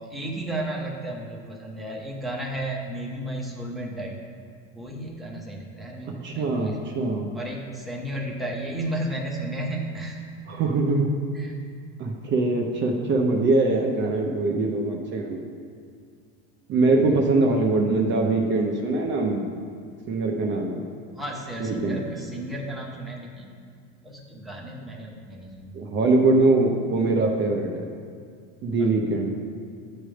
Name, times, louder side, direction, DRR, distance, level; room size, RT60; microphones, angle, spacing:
voice 1, 0.1-4.2 4.7-6.8 7.3-10.2 11.3-11.6 16.9-17.2 21.2-23.5 24.0-25.7 28.8-28.9, right 1 dB, ahead, -2 dB, 0.8 m, -33 dB
voice 2, 6.2-7.3 10.5-11.1 12.0-15.4 16.7-19.5 20.1-20.8 21.6-22.0 25.7-27.9 28.6-29.4, right 3 dB, 35° right, 1 dB, 0.7 m, -22 dB
8.8 x 3.4 x 6.2 m, 2.2 s
supercardioid pair, 140°, 34 cm